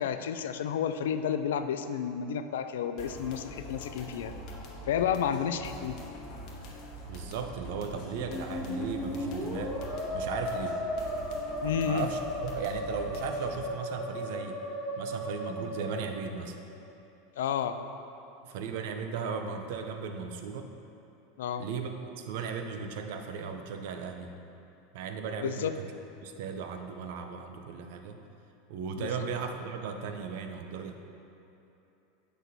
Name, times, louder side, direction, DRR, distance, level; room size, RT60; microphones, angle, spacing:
voice 1, 0.0-4.3 4.9-5.9 11.6-12.1 17.4-17.8 21.4-21.7 25.4-25.7 29.0-29.1, left 8 dB, 80° left, 9 dB, 0.3 m, -31 dB
sound 1, 3.0-13.6, equal, 55° left, 1.0 m, -44 dB
voice 2, 7.1-9.8 10.1-10.8 11.8-14.6 15.0-16.5 18.4-20.7 21.6-21.9 22.2-24.4 24.9-25.9 26.2-28.2 28.7-31.0, right 5 dB, 65° right, 5 dB, 0.5 m, -36 dB
Musical instrument, 8.0-16.8, equal, 15° left, 1.1 m, -36 dB
7.6 x 6.1 x 2.7 m, 2.9 s
hypercardioid pair, 95°, 0 cm